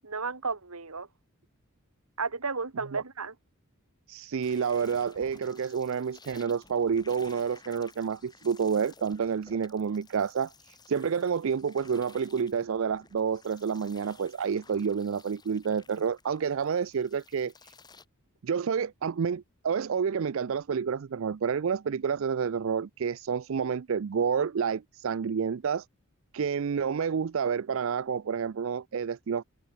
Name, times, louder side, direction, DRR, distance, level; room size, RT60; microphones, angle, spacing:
voice 1, 0.0-1.1 2.2-3.4, right 4 dB, 85° right, 2.2 m, -33 dB
voice 2, 4.1-17.7 18.4-25.9 26.3-29.4, right 6 dB, 65° right, 0.4 m, -29 dB
sound 1, 4.4-18.1, left 4 dB, 20° left, 3.9 m, -55 dB
head